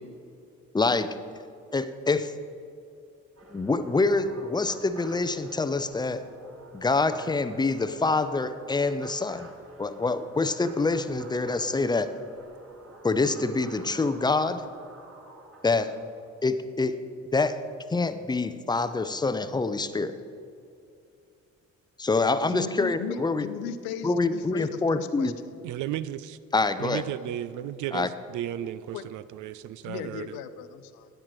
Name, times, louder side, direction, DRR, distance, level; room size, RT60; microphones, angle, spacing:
voice 1, 0.7-1.1 1.7-2.3 3.5-6.2 6.7-9.5 9.8-12.1 13.0-14.6 15.6-15.9 16.4-17.0 17.3-17.6 17.9-20.2 22.0-23.5 24.0-25.3 26.5-27.0 27.9-28.1, left 3 dB, 10° left, 12 dB, 0.5 m, -26 dB
sound 1, 3.4-16.3, right 2 dB, 35° right, 2.2 m, -49 dB
voice 2, 22.5-25.3 28.6-29.1 29.8-31.1, left 8 dB, 65° left, 12 dB, 0.6 m, -37 dB
voice 3, 25.6-26.4 26.8-30.4, right 12 dB, 50° right, 15 dB, 0.4 m, -34 dB
13.0 x 9.8 x 3.2 m, 2.5 s
figure-of-eight pair, 40°, 38 cm